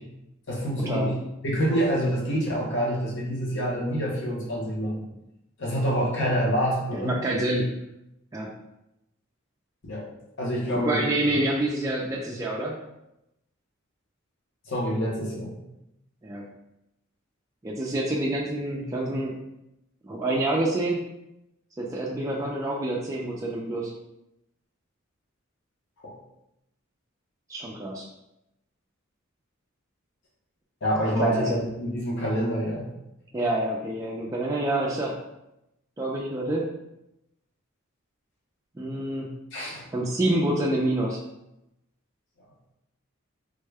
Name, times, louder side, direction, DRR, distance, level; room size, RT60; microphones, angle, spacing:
voice 1, 0.5-1.1 1.4-5.1 5.6-7.1 9.8-10.1 10.4-11.1 14.7-15.5 26.0-26.1 30.8-32.9 39.5-39.8, equal, 60° left, -4 dB, 0.9 m, -27 dB
voice 2, 6.9-7.7 8.3-8.5 10.9-12.7 16.2-16.5 17.6-19.3 20.0-21.0 21.8-23.9 27.5-28.1 31.2-31.6 33.3-35.2 36.0-36.7 38.8-39.3 39.9-41.2, right 1 dB, 15° right, -4 dB, 0.3 m, -27 dB
3.5 x 2.1 x 3.3 m, 0.88 s
head